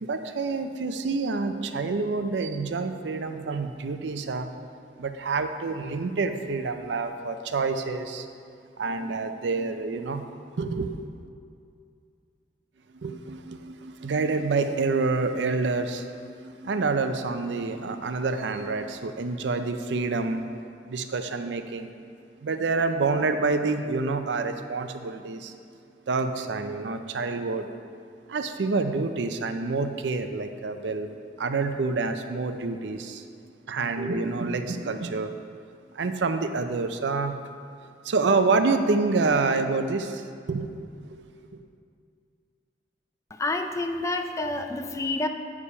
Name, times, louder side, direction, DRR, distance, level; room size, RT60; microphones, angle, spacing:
voice 1, 0.0-4.7 5.0-8.3 8.8-10.2 10.5-11.0 13.0-20.4 20.9-21.9 22.4-25.5 26.1-27.7 28.3-31.1 31.4-33.2 33.7-35.3 35.9-37.4 38.0-41.2 41.5-41.6, right 3 dB, 75° right, 8 dB, 0.5 m, -27 dB
voice 2, 43.3-45.3, left 2 dB, 15° left, 6 dB, 0.4 m, -28 dB
8.4 x 4.8 x 5.5 m, 2.4 s
head